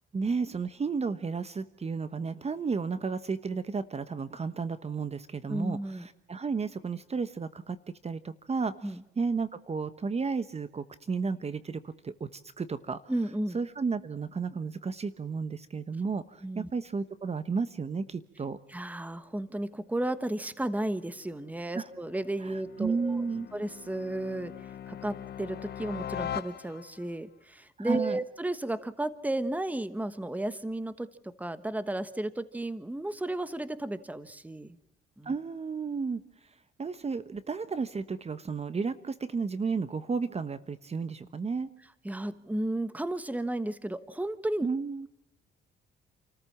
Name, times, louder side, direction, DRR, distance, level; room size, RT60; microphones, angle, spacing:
voice 1, 0.1-7.8 8.0-13.0 13.5-18.6 21.7-21.8 22.4-23.5 27.8-28.2 35.2-36.2 36.8-41.7 44.6-45.1, right 5 dB, 30° right, 13 dB, 1.1 m, -33 dB
voice 2, 5.5-6.1 8.8-9.0 13.1-13.6 16.4-16.7 18.7-23.2 23.5-34.8 35.2-35.3 42.0-44.7, right 1 dB, 10° right, 13 dB, 1.3 m, -33 dB
sound 1, 20.7-27.1, left 10 dB, 55° left, 0.8 m, -42 dB
28.5 x 14.5 x 7.4 m, 0.85 s
cardioid pair, 90°, 20 cm